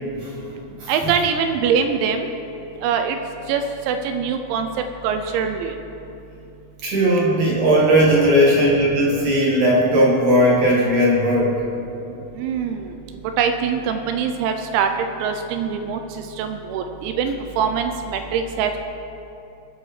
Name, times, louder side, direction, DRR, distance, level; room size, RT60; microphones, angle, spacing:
voice 1, 0.9-2.3 2.8-3.2 3.5-4.7 5.0-5.7 12.4-12.8 13.4-14.9 15.2-16.0 16.4-18.8, right 6 dB, 85° right, 6 dB, 2.8 m, -23 dB
voice 2, 6.8-11.5, equal, 60° right, -5 dB, 2.2 m, -17 dB
22.0 x 7.7 x 3.2 m, 2.9 s
omnidirectional pair, 5.5 m